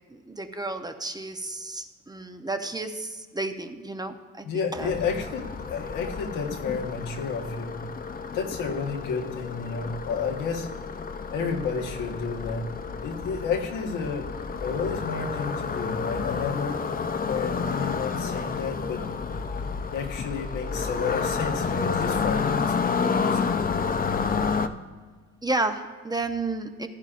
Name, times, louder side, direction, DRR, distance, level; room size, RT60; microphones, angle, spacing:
voice 1, 0.1-4.9 25.4-26.9, right 2 dB, 15° right, 7 dB, 0.7 m, -32 dB
voice 2, 4.4-7.8 8.3-10.7 11.3-12.6 13.0-14.3 14.6-16.8 17.2-19.0 19.9-23.4, left 5 dB, 90° left, 1 dB, 1.4 m, -31 dB
sound 1, 4.8-24.7, left 5 dB, 30° left, 0.5 m, -30 dB
15.0 x 9.8 x 2.5 m, 1.5 s
cardioid pair, 90°, 30 cm